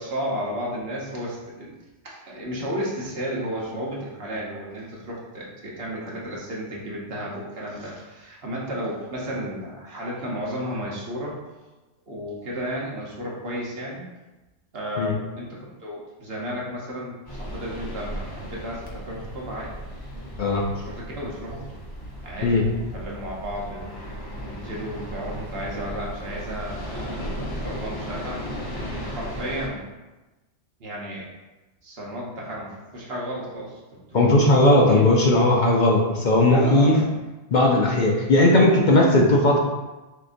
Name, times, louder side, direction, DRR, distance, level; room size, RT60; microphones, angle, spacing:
voice 1, 0.0-1.7 2.0-11.4 12.1-14.1 14.7-19.9 20.8-21.8 22.2-28.4 29.0-29.8 30.8-31.3 31.8-33.8 34.1-34.3 34.6-35.1 36.5-37.1, equal, 60° right, -4 dB, 1.2 m, -33 dB
sound 1, 17.3-29.7, equal, 20° left, 0.8 m, -35 dB
voice 2, 34.1-37.0 37.5-39.6, left 1 dB, 55° left, -1 dB, 0.6 m, -17 dB
6.4 x 2.8 x 2.6 m, 1.1 s
omnidirectional pair, 1.2 m